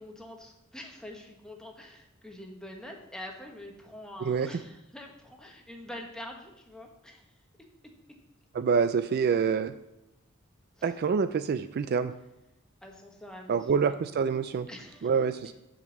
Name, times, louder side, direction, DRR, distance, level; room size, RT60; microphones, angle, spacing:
voice 1, 0.0-7.3 10.8-10.9 12.8-14.0 14.7-15.1, left 1 dB, 5° left, 1 dB, 1.2 m, -45 dB
voice 2, 8.5-9.7 10.8-12.1 13.5-14.7 15.0-15.5, right 6 dB, 50° right, 12 dB, 0.3 m, -26 dB
6.6 x 5.1 x 7.1 m, 0.92 s
head